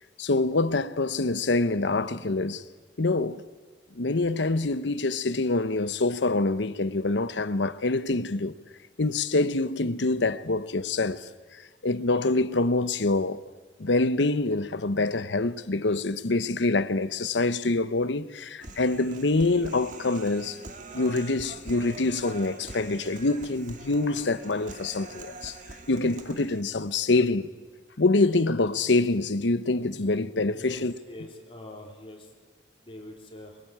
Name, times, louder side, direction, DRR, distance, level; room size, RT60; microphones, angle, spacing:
voice 1, 0.2-2.6 3.0-3.4 3.9-8.5 9.0-11.3 11.8-13.4 13.8-20.6 20.9-25.6 25.9-27.5 28.0-30.9, left 2 dB, 85° left, 0.9 m, -25 dB
Human voice, 18.6-26.6, right 2 dB, 45° right, 1.7 m, -44 dB
voice 2, 30.5-32.3 32.8-33.6, left 1 dB, 30° left, 3.5 m, -44 dB
23.0 x 22.5 x 8.7 m
head